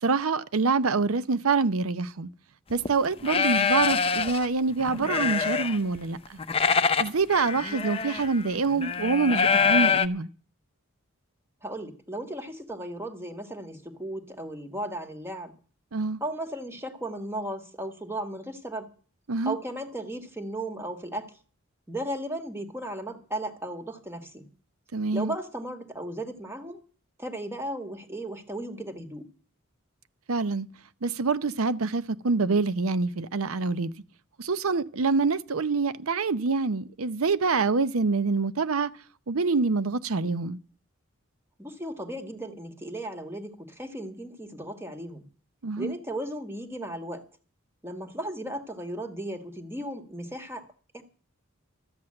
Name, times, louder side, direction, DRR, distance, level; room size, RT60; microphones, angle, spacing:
voice 1, 0.0-2.3 2.7-6.4 7.0-10.3 15.9-16.2 19.3-19.6 24.9-25.3 30.3-30.7 31.0-33.9 34.4-38.9 39.3-40.6 45.6-45.9, right 4 dB, 85° right, 0.7 m, -26 dB
sound 1, 2.7-2.9 3.2-4.5 4.8-6.0 6.2-10.1, left 5 dB, 25° left, 0.6 m, -25 dB
voice 2, 11.6-15.5 16.2-18.9 19.5-21.4 21.9-24.5 25.1-26.8 27.2-29.3 41.6-45.3 45.8-47.3 47.8-50.7 50.9-51.0, right 1 dB, 10° right, 1.7 m, -35 dB
13.0 x 7.9 x 8.7 m
head